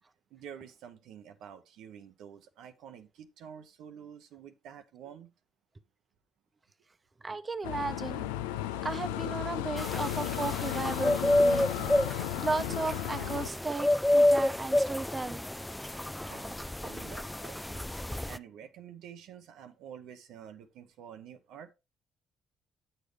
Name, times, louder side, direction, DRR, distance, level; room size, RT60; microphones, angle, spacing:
voice 1, 0.3-5.3 16.3-21.7, right 8 dB, 75° right, 0.7 m, -49 dB
voice 2, 7.2-8.3 8.8-15.5, right 3 dB, 30° right, 0.8 m, -35 dB
sound 1, 7.6-13.5, left 13 dB, 85° left, 0.3 m, -35 dB
sound 2, 9.8-18.4, left 1 dB, 10° left, 0.4 m, -29 dB
8.9 x 6.7 x 3.2 m
hypercardioid pair, 55°, 0 cm